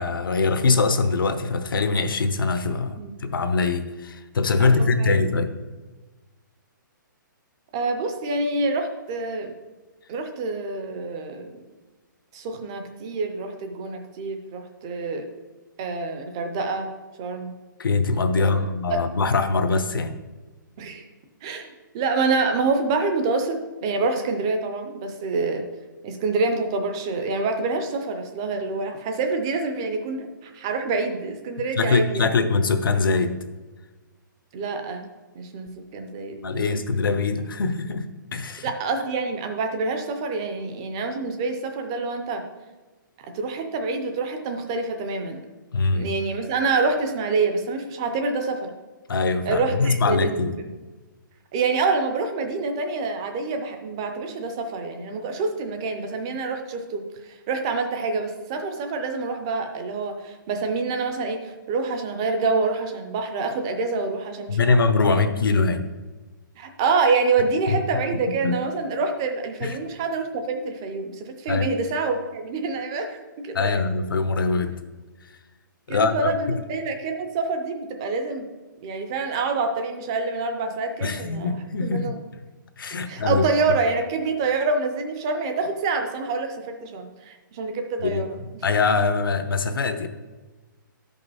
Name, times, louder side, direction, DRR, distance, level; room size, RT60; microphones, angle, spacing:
voice 1, 0.0-5.6 17.8-20.2 31.8-33.3 36.4-38.1 38.3-38.7 45.7-46.1 49.1-50.6 64.5-65.8 67.7-67.8 68.4-68.5 69.6-69.8 71.5-71.7 73.5-74.7 75.9-76.6 81.0-82.1 82.8-83.4 88.0-88.3 88.6-90.1, left 4 dB, 85° left, 9 dB, 1.0 m, -23 dB
voice 2, 4.6-5.3 7.7-9.5 10.1-11.6 12.3-15.3 15.8-16.9 17.2-17.5 18.3-18.7 18.9-19.0 20.8-21.1 21.4-21.7 21.9-25.7 26.0-32.3 34.5-35.1 35.3-36.6 38.6-42.5 43.2-45.4 45.9-48.7 49.5-50.7 51.5-64.8 66.6-73.8 75.9-78.5 78.8-82.2 83.1-88.3, right 4 dB, 15° right, 5 dB, 0.4 m, -27 dB
13.0 x 5.4 x 4.1 m, 1.2 s
hypercardioid pair, 180°, 11 cm